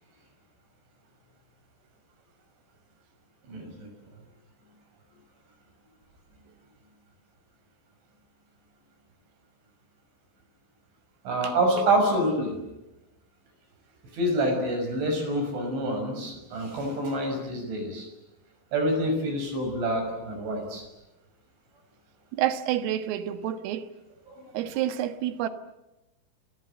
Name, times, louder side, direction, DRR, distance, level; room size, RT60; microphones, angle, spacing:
voice 1, 3.5-3.9 11.2-12.5 14.1-18.1 18.7-20.8 24.3-24.4, right 1 dB, 65° right, 8.5 m, -27 dB
voice 2, 22.3-23.9 24.5-25.5, right 11 dB, 90° right, 4.2 m, -28 dB
29.5 x 25.0 x 7.7 m
omnidirectional pair, 5.7 m